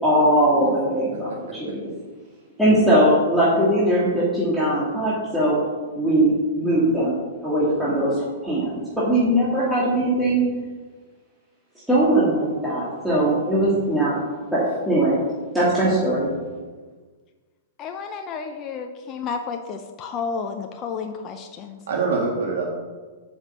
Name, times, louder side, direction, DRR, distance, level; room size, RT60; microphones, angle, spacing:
voice 1, 0.0-1.9 2.6-5.6 5.9-7.2 7.4-8.2 8.4-10.5 11.9-14.1 14.5-15.2 15.5-16.3, right 1 dB, ahead, -9 dB, 2.1 m, -20 dB
voice 2, 15.9-16.4 21.9-22.8, right 4 dB, 75° right, -1 dB, 1.5 m, -26 dB
voice 3, 17.8-21.8, left 5 dB, 30° left, 4 dB, 0.6 m, -31 dB
7.2 x 5.4 x 6.9 m, 1.4 s
hypercardioid pair, 135°, 0 cm